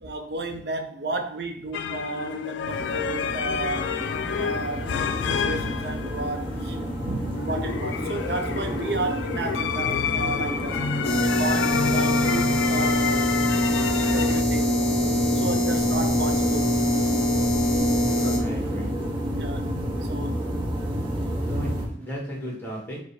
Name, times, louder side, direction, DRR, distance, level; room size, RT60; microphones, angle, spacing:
voice 1, 0.0-3.9 4.4-4.9 5.3-10.8 11.2-13.3 14.1-14.8 15.3-16.7 18.2-18.5 19.3-19.7 20.1-20.4, right 2 dB, 65° right, 6 dB, 0.6 m, -32 dB
sound 1, 1.7-14.4, left 7 dB, 90° left, 0.3 m, -29 dB
sound 2, 2.6-21.9, equal, 30° right, 0.8 m, -31 dB
sound 3, 11.0-18.4, equal, 35° left, 1.1 m, -23 dB
voice 2, 18.0-18.9 21.5-23.0, right 1 dB, 10° left, -3 dB, 1.4 m, -35 dB
4.9 x 2.1 x 4.1 m, 0.63 s
head